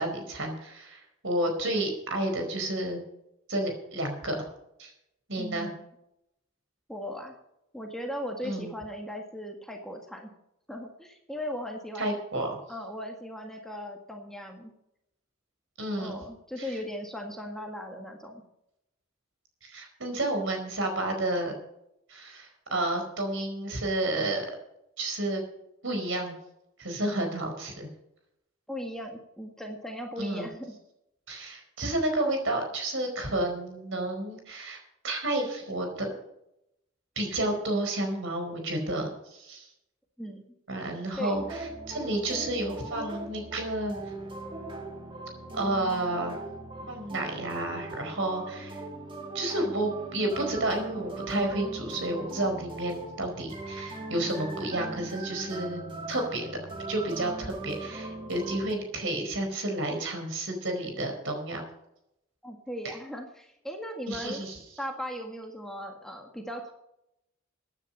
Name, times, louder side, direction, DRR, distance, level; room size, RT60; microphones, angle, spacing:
voice 1, 0.0-3.0 3.5-4.4 4.8-4.9 5.3-5.7 8.4-8.7 12.0-12.5 15.8-16.2 16.6-16.7 19.6-21.6 22.1-24.4 25.0-25.4 25.8-26.3 26.8-27.9 30.2-30.5 31.3-36.1 37.2-39.7 40.7-44.0 45.5-46.4 46.9-48.8 49.3-55.8 56.1-56.6 56.9-61.6 62.8-62.9 64.1-64.6, right 1 dB, 65° right, 4 dB, 4.7 m, -31 dB
voice 2, 5.4-5.7 6.9-7.3 7.7-10.3 10.7-12.2 12.7-14.7 16.0-18.4 28.7-30.8 40.2-40.4 41.2-41.4 62.4-64.4 64.8-66.7, equal, ahead, 2 dB, 1.7 m, -38 dB
sound 1, 41.3-58.7, right 2 dB, 25° right, 2.2 m, -40 dB
15.5 x 9.8 x 5.5 m, 0.82 s
head